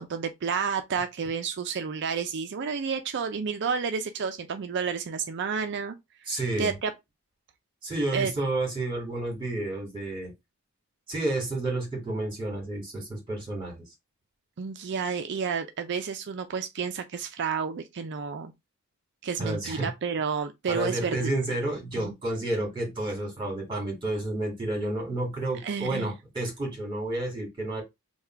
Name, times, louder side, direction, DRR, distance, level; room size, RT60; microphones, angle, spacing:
voice 1, 0.0-6.0 6.6-6.9 8.1-8.3 14.6-18.5 19.2-21.3 22.0-22.1 25.6-26.1, right 6 dB, 50° right, 0.4 m, -30 dB
voice 2, 6.3-6.7 7.8-10.3 11.1-13.8 19.4-19.9 20.7-27.8, right 2 dB, 20° right, 2.0 m, -30 dB
3.6 x 2.3 x 4.3 m
head